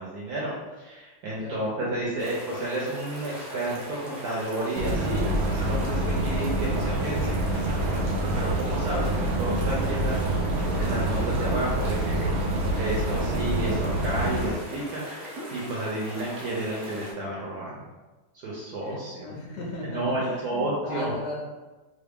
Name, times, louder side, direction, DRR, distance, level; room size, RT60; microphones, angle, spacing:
voice 1, 0.0-10.2 10.5-17.7 18.4-19.3 19.8-21.1, right 1 dB, 70° right, -5 dB, 1.2 m, -32 dB
sound 1, 2.2-17.1, left 1 dB, 45° right, 0.7 m, -40 dB
sound 2, 4.7-14.5, right 1 dB, 85° right, 1.3 m, -26 dB
voice 2, 18.8-21.4, left 1 dB, 70° left, -3 dB, 0.6 m, -36 dB
3.1 x 2.5 x 3.5 m, 1.2 s
omnidirectional pair, 1.8 m